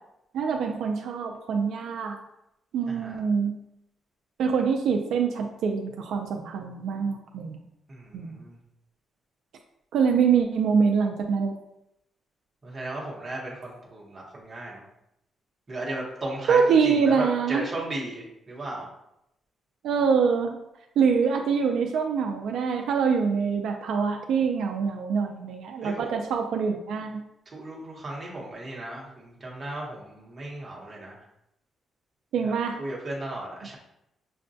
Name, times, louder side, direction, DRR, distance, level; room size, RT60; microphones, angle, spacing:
voice 1, 0.3-2.2 2.7-3.5 4.4-7.6 8.1-8.4 9.9-11.5 16.5-17.6 19.8-20.6 21.0-27.2 32.3-32.8, right 6 dB, 75° right, 3 dB, 0.3 m, -24 dB
voice 2, 2.9-3.2 7.9-8.6 12.6-14.8 15.7-18.9 25.8-26.1 27.5-31.1 32.4-32.5 32.8-33.8, right 2 dB, 25° right, -3 dB, 0.9 m, -35 dB
6.2 x 2.2 x 2.6 m, 0.84 s
cardioid pair, 175°, 0 cm